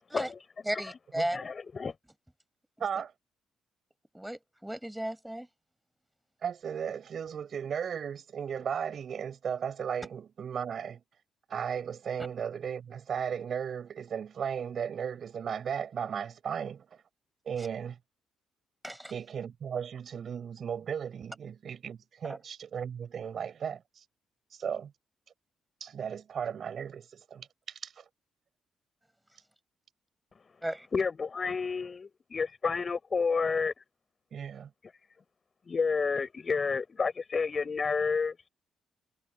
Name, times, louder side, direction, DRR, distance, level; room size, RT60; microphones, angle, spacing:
voice 1, 0.1-0.4 0.7-1.0 1.3-1.9 30.3-30.6 30.9-33.8 34.8-35.1 35.6-38.5, left 5 dB, 40° left, 6.7 m, -31 dB
voice 2, 0.7-1.4 4.1-5.5 18.8-19.1 30.6-30.9, right 1 dB, 5° right, 6.3 m, -34 dB
voice 3, 2.8-3.1 6.4-11.0 11.5-17.0 17.5-18.0 19.1-24.0 24.5-24.9 25.8-28.1 34.3-34.7, right 7 dB, 55° right, 7.0 m, -36 dB
hypercardioid pair, 45°, 0 cm